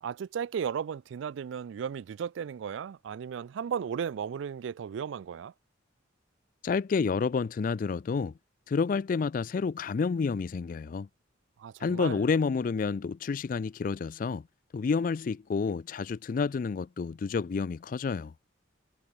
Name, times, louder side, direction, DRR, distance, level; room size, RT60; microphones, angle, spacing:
voice 1, 0.0-5.5 11.6-12.2, right 7 dB, 80° right, 0.3 m, -35 dB
voice 2, 6.6-8.3 8.7-11.1 11.8-14.4 14.7-18.3, left 5 dB, 45° left, 0.3 m, -29 dB
head